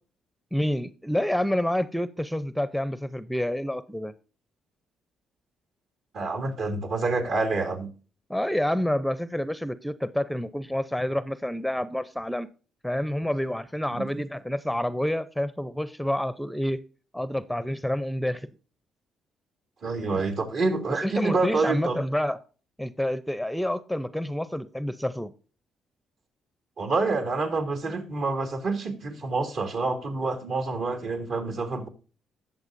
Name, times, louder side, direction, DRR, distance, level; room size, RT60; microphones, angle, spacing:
voice 1, 0.5-4.1 8.3-12.5 12.8-16.8 17.1-18.5 21.0-22.4 22.8-25.3, left 1 dB, ahead, 0.6 m, -28 dB
voice 2, 6.1-7.9 14.0-14.1 19.8-22.0 26.8-31.9, right 3 dB, 65° right, 2.8 m, -27 dB
19.0 x 6.8 x 2.6 m
cardioid pair, 90°, 0 cm